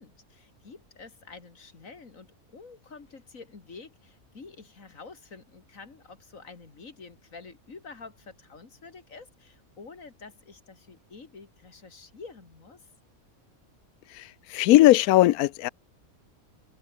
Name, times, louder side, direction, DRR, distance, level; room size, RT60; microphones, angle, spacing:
voice 1, 0.0-2.3 2.5-12.8, left 4 dB, 65° left, 2.8 m, -48 dB
voice 2, 14.1-15.7, left 15 dB, 85° left, 1.0 m, -19 dB
omnidirectional pair, 1.5 m